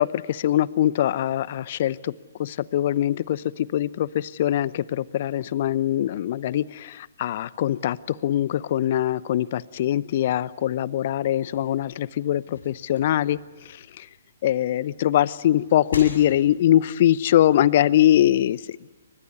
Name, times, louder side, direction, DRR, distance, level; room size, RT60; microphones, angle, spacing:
voice 1, 0.0-2.1 2.4-13.4 14.0-14.1 14.4-18.6, left 12 dB, 45° left, 20 dB, 0.8 m, -22 dB
sound 1, 11.4-14.6 15.0-16.8, left 3 dB, 65° left, 6.9 m, -41 dB
29.0 x 24.5 x 8.3 m, 1.2 s
figure-of-eight pair, 125°, 0 cm